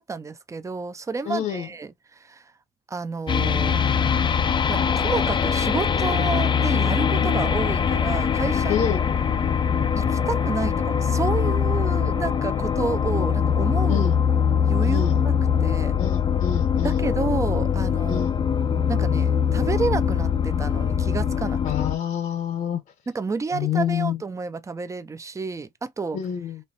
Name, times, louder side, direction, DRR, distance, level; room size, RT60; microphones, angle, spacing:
voice 1, 0.0-2.5 2.9-3.8 4.7-8.9 10.0-14.1 14.6-15.3 15.6-16.0 16.8-18.3 18.9-21.6 23.1-26.2, right 4 dB, 20° right, 0.6 m, -30 dB
voice 2, 1.3-1.7 8.7-9.0 13.9-14.2 14.8-15.2 16.0-17.0 18.1-18.4 21.6-22.8 23.5-24.2 26.1-26.6, left 9 dB, 50° left, 0.9 m, -27 dB
sound 1, 3.3-22.0, left 7 dB, 30° left, 0.5 m, -22 dB
4.4 x 3.0 x 2.7 m
cardioid pair, 110°, 17 cm